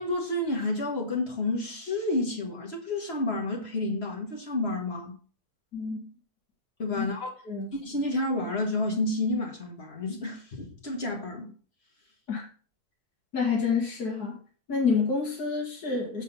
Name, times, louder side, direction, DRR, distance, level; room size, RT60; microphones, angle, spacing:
voice 1, 0.0-5.1 6.8-7.3 7.7-11.5, left 2 dB, 45° left, 1.7 m, -30 dB
voice 2, 13.3-14.4 14.7-16.2, left 5 dB, 90° left, 2.2 m, -28 dB
7.3 x 4.3 x 5.4 m
omnidirectional pair, 1.6 m